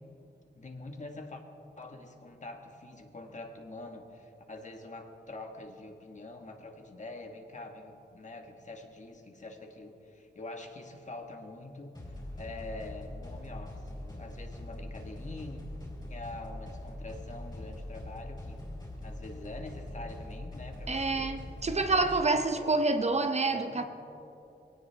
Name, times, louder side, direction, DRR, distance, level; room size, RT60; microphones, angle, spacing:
voice 1, 0.6-1.4 1.8-15.6 16.1-18.6 19.0-21.3 21.9-23.8, left 2 dB, 40° left, 3 dB, 1.6 m, -45 dB
sound 1, 11.9-22.2, left 1 dB, 25° left, 3.9 m, -42 dB
voice 2, 20.9-23.8, right 3 dB, 35° right, 7 dB, 0.8 m, -28 dB
22.0 x 17.5 x 3.5 m, 2.8 s
wide cardioid pair, 135°, 18 cm